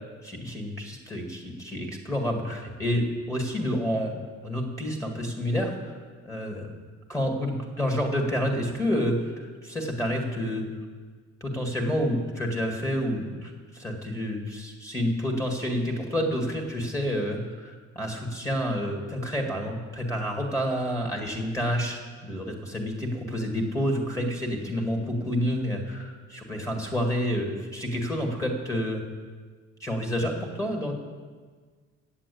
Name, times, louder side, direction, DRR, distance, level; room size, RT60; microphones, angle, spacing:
voice 1, 0.2-6.0 6.2-6.7 7.1-10.7 11.4-29.0 29.8-30.9, equal, 10° left, 2 dB, 2.0 m, -29 dB
8.5 x 7.5 x 8.5 m, 1.5 s
cardioid pair, 90°, 30 cm